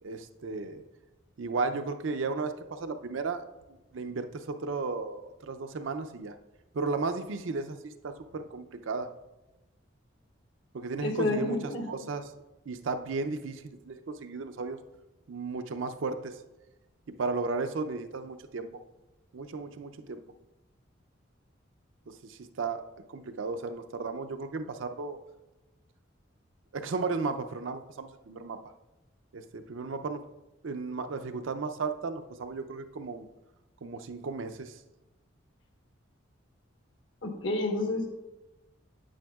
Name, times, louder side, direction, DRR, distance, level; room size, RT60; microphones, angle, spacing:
voice 1, 0.0-0.8 1.4-3.4 3.9-6.3 6.7-9.1 10.7-12.2 12.7-14.8 15.3-16.3 17.2-18.7 19.3-20.2 22.1-22.8 23.1-25.2 26.7-28.6 29.3-30.2 30.6-33.2 33.8-34.7, right 4 dB, 75° right, 8 dB, 0.5 m, -34 dB
voice 2, 11.0-11.9 37.2-38.1, left 2 dB, 70° left, 3 dB, 1.2 m, -29 dB
8.9 x 8.5 x 2.3 m, 1.0 s
head